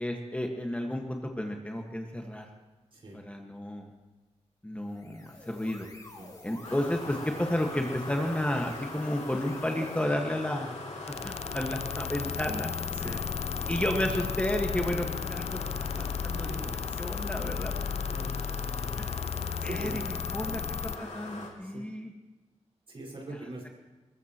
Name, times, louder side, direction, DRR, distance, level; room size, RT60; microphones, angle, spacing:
voice 1, 0.0-2.5 3.1-3.9 4.6-5.9 6.4-10.7 11.2-12.7 13.0-13.2 13.7-15.7 16.0-16.5 17.0-17.7 19.0-19.2 19.6-20.0 20.3-20.6 21.0-22.1, left 1 dB, 10° left, 1 dB, 1.6 m, -32 dB
voice 2, 2.9-3.2 6.2-6.3 12.9-13.3 16.3-17.3 18.1-18.4 19.6-20.1 20.4-20.6 21.6-21.8 22.9-23.7, right 2 dB, 50° right, -2 dB, 5.3 m, -42 dB
sound 1, 4.8-10.1, left 2 dB, 30° left, 2.5 m, -49 dB
sound 2, 6.6-21.5, left 2 dB, 80° left, 3.0 m, -41 dB
sound 3, 11.1-21.0, left 7 dB, 65° left, 0.5 m, -34 dB
21.5 x 20.5 x 3.1 m, 1.2 s
cardioid pair, 80°, 12 cm